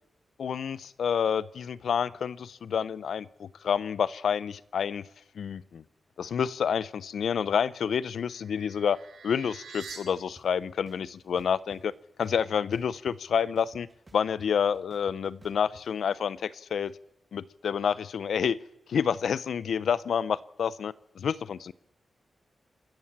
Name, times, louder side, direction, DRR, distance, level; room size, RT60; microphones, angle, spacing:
voice 1, 0.4-5.0 5.3-5.8 6.2-11.9 12.2-13.9 14.1-16.9 17.3-18.6 18.9-21.7, left 7 dB, 85° left, 18 dB, 0.7 m, -29 dB
sound 1, 7.7-10.0, right 5 dB, 75° right, 6.1 m, -47 dB
sound 2, 10.4-10.5 10.9-11.8 12.2-13.3 13.6-15.8, right 2 dB, 25° right, 1.6 m, -55 dB
27.0 x 14.0 x 7.4 m, 0.87 s
wide cardioid pair, 120°, 0 cm